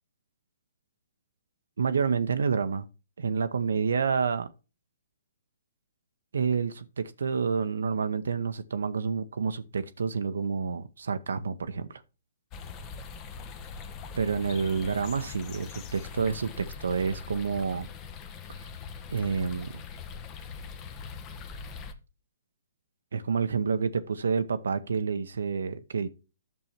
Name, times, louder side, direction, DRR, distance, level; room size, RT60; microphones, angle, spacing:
voice 1, 1.8-2.9 3.2-4.5 6.3-12.0 14.2-17.9 19.1-19.8 23.1-26.1, right 5 dB, 65° right, 0.9 m, -29 dB
Regents Park - Waterfall, 12.5-21.9, left 6 dB, 25° left, 1.2 m, -42 dB
11.0 x 6.8 x 4.4 m
figure-of-eight pair, 125°, 0 cm